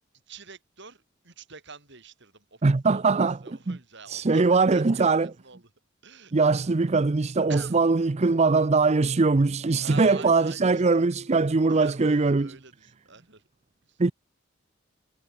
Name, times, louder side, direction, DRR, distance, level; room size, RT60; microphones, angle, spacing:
voice 1, 0.3-5.7 6.0-6.9 7.5-7.8 9.8-11.0 11.7-13.4 13.9-14.0, right 4 dB, 60° right, 6.9 m, -46 dB
voice 2, 2.6-3.4 3.7-3.8 4.1-5.3 6.3-12.5 14.0-14.1, right 3 dB, 35° right, 0.5 m, -21 dB
head